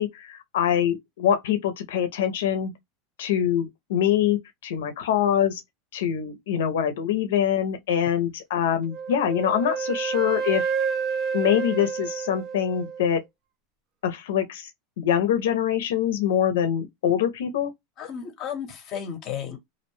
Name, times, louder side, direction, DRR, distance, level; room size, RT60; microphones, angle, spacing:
voice 1, 0.0-2.7 3.2-5.6 5.9-10.7 11.3-13.2 14.0-14.7 15.0-17.7, left 9 dB, 85° left, 0.5 m, -24 dB
Wind instrument woodwind instrument, 8.9-13.1, right 6 dB, 35° right, 0.4 m, -29 dB
voice 2, 18.0-19.6, left 8 dB, 40° left, 0.6 m, -33 dB
2.4 x 2.1 x 3.0 m
supercardioid pair, 140°, 0 cm